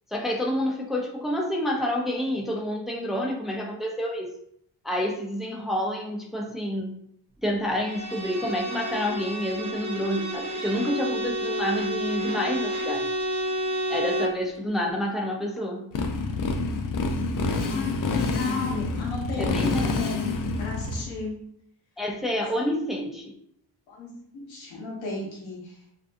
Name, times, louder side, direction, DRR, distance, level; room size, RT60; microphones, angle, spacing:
voice 1, 0.1-4.3 4.8-6.9 7.4-13.1 13.9-15.8 19.4-19.8 22.0-23.3, left 1 dB, ahead, -1 dB, 0.5 m, -28 dB
Bowed string instrument, 7.8-14.5, right 1 dB, 35° right, 0.8 m, -30 dB
Motorcycle, 15.9-21.0, left 3 dB, 45° left, 0.5 m, -27 dB
voice 2, 17.6-20.3 20.6-21.4 23.9-25.9, left 3 dB, 90° left, -3 dB, 0.9 m, -34 dB
2.6 x 2.3 x 2.5 m, 0.70 s
cardioid pair, 50°, 45 cm